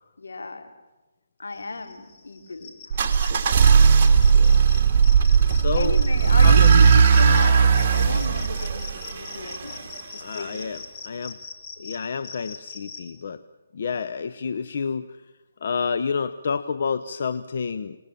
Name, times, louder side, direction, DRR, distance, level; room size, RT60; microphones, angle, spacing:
voice 1, 0.2-0.7 1.4-3.0 5.7-10.7, left 3 dB, 85° left, 6 dB, 3.7 m, -34 dB
sound 1, 1.5-13.0, left 4 dB, 30° left, 4.3 m, -41 dB
sound 2, 2.9-9.8, right 6 dB, 35° right, 2.7 m, -17 dB
voice 2, 5.5-6.0 6.4-6.9 10.2-11.4 11.8-13.4 13.7-15.1 15.6-18.0, left 6 dB, 55° left, 10 dB, 1.0 m, -29 dB
27.5 x 19.5 x 8.6 m, 1.1 s
hypercardioid pair, 155°, 0 cm